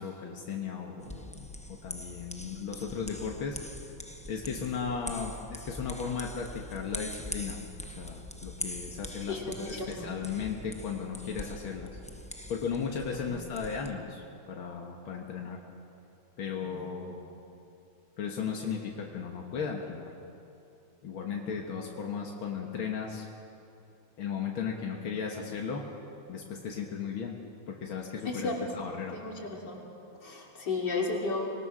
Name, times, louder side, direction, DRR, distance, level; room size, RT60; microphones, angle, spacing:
voice 1, 0.0-1.5 1.8-3.6 4.3-7.6 8.0-11.9 12.5-15.6 16.4-17.4 18.2-20.1 21.0-23.3 24.2-25.8 26.3-27.4 27.7-29.2, left 6 dB, 90° left, 0 dB, 2.3 m, -36 dB
sound 1, 1.0-13.9, left 1 dB, 10° left, 0.4 m, -43 dB
voice 2, 9.2-10.1 13.3-13.4 16.7-16.9 28.2-28.6 29.1-29.8 30.2-31.5, left 3 dB, 55° left, -2 dB, 3.7 m, -34 dB
25.5 x 20.5 x 6.2 m, 2.8 s
omnidirectional pair, 2.2 m